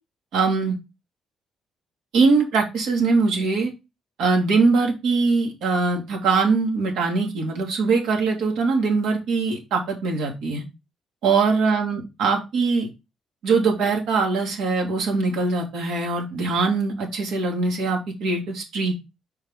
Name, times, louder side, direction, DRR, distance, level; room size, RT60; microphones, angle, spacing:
voice 1, 0.3-0.8 2.1-3.7 4.2-10.6 11.2-12.9 13.4-18.9, right 4 dB, 85° right, 1 dB, 2.6 m, -22 dB
5.8 x 4.6 x 3.5 m, 0.25 s
cardioid pair, 140°, 0 cm